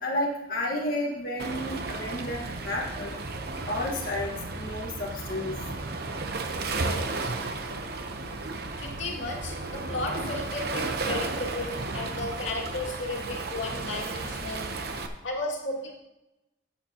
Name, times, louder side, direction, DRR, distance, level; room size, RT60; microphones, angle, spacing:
voice 1, 0.0-3.2 3.7-5.6, left 1 dB, 50° left, -4 dB, 1.6 m, -31 dB
Waves surf, 1.4-15.1, right 3 dB, 55° right, 0.9 m, -33 dB
voice 2, 8.8-14.7 15.2-15.9, left 2 dB, 80° left, -2 dB, 2.2 m, -34 dB
15.0 x 7.3 x 2.9 m, 0.92 s
head